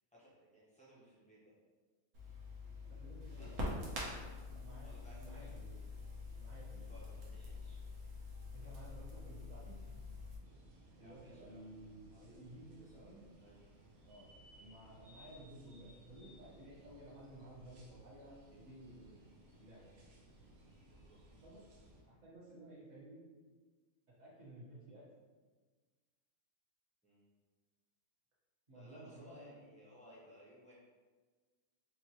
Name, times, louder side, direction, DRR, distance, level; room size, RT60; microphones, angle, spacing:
voice 1, 0.1-1.5 3.3-3.7 4.2-4.3 4.8-5.5 6.9-7.8 10.9-11.6 12.8-13.6 20.9-21.4 27.0-27.2 28.7-30.7, equal, 5° left, -9 dB, 0.8 m, -61 dB
Crackle, 2.1-10.4, left 2 dB, 90° right, 1.3 m, -45 dB
voice 2, 2.8-4.1 4.5-5.8 6.4-7.4 8.5-9.9 10.4-13.2 14.0-14.3 14.5-19.2 19.6-19.9 21.4-21.6 22.0-23.2 24.1-25.0 28.7-29.6, right 1 dB, 30° right, -8 dB, 1.1 m, -55 dB
sound 1, 10.4-22.0, right 1 dB, 55° right, 0.8 m, -61 dB
3.9 x 2.6 x 2.9 m, 1.4 s
omnidirectional pair, 1.5 m